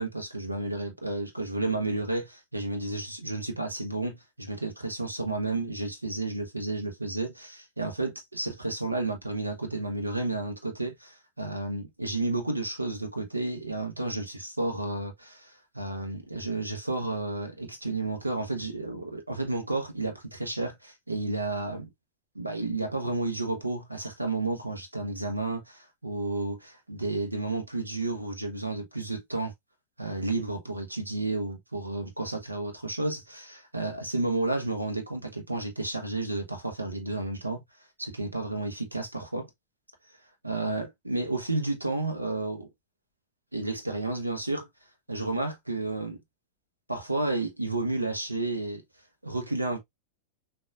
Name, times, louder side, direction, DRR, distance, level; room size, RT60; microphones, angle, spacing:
voice 1, 0.0-21.9 22.3-29.5 30.0-37.6 38.0-39.5 40.4-42.7 43.5-44.7 45.1-46.2 46.9-48.8 49.2-49.8, right 2 dB, 85° right, 1.1 m, -31 dB
6.3 x 2.7 x 2.5 m
figure-of-eight pair, 90°, 0 cm